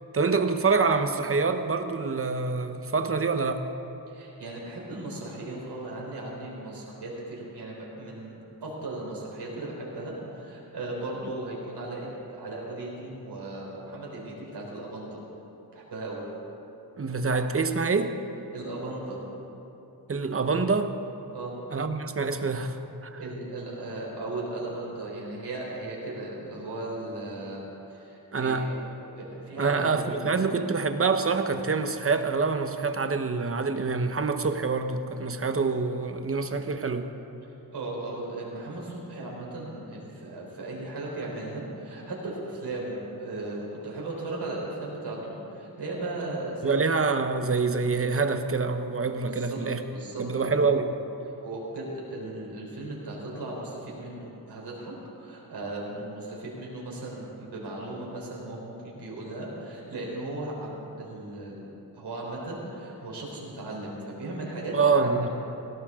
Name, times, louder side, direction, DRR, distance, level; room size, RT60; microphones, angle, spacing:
voice 1, 0.1-3.6 17.0-18.1 20.1-21.0 21.7-22.8 23.0-23.2 28.3-28.7 29.6-37.1 46.6-49.8 50.2-50.9 64.7-65.3, right 4 dB, 35° right, 7 dB, 0.9 m, -26 dB
voice 2, 4.1-15.2 15.7-16.2 18.5-19.2 21.3-21.6 23.2-27.6 27.9-28.8 29.2-30.6 37.4-47.0 49.3-49.6 49.9-50.7 51.4-61.6 61.9-65.3, right 2 dB, 85° right, -3 dB, 3.9 m, -37 dB
18.0 x 17.0 x 3.7 m, 2.9 s
wide cardioid pair, 105°, 39 cm